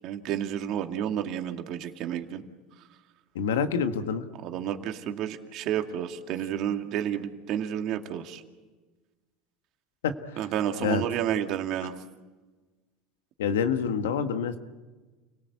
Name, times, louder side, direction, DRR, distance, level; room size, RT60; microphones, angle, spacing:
voice 1, 0.0-2.4 4.4-8.4 10.4-11.9, right 10 dB, 55° right, 5 dB, 2.3 m, -30 dB
voice 2, 3.3-4.2 10.0-10.5 10.8-11.0 13.4-14.6, left 6 dB, 85° left, 8 dB, 1.6 m, -27 dB
29.5 x 18.5 x 8.4 m, 1.3 s
hypercardioid pair, 90°, 0 cm